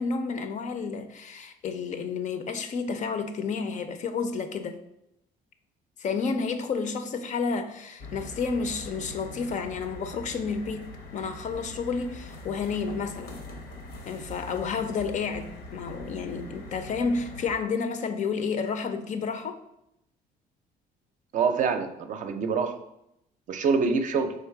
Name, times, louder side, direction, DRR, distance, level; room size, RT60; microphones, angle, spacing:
voice 1, 0.0-4.8 6.0-13.4 14.1-19.6, left 5 dB, 45° left, 0.5 m, -31 dB
sound 1, 8.0-17.5, left 1 dB, 80° left, 0.8 m, -42 dB
voice 2, 21.3-22.7 23.5-24.3, right 5 dB, 50° right, 0.5 m, -25 dB
3.6 x 3.2 x 4.6 m
cardioid pair, 110°, 17 cm